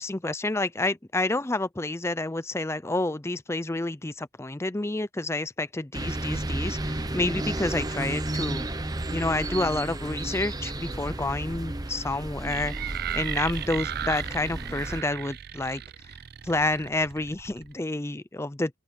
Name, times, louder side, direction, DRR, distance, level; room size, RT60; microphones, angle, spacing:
voice 1, 0.0-8.7 9.1-15.8 16.4-18.8, left 2 dB, 10° left, 0.5 m, -29 dB
sound 1, 5.9-15.0, right 1 dB, 20° right, 0.9 m, -32 dB
sound 2, 12.4-17.7, right 11 dB, 45° right, 0.4 m, -36 dB
open air
head